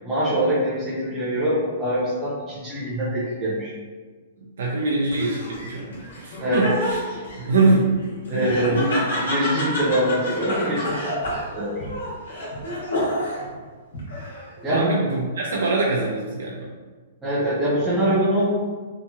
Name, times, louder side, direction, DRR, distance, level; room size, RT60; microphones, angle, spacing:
voice 1, 0.0-3.7 6.4-6.6 7.1-7.2 8.3-8.8 9.2-11.2 11.5-11.9 14.6-15.0 17.2-18.4, equal, 5° right, -12 dB, 0.4 m, -24 dB
voice 2, 4.4-7.0 7.3-7.9 8.3-9.0 14.7-16.7, right 3 dB, 85° right, -3 dB, 0.5 m, -23 dB
Laughter, 5.1-13.5 13.9-14.6, equal, 90° left, 1.1 m, -29 dB
2.8 x 2.7 x 2.2 m, 1.4 s
hypercardioid pair, 180°, 0 cm